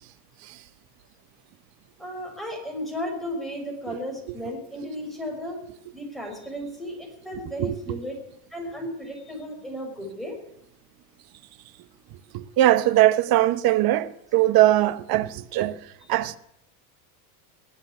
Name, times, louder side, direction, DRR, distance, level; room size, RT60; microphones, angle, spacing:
voice 1, 2.0-5.6 5.9-8.2 8.5-10.4, equal, ahead, 5.3 m, -34 dB
voice 2, 7.6-8.0 12.3-16.4, right 14 dB, 50° right, 1.1 m, -21 dB
20.0 x 7.2 x 9.6 m
supercardioid pair, 125°, 46 cm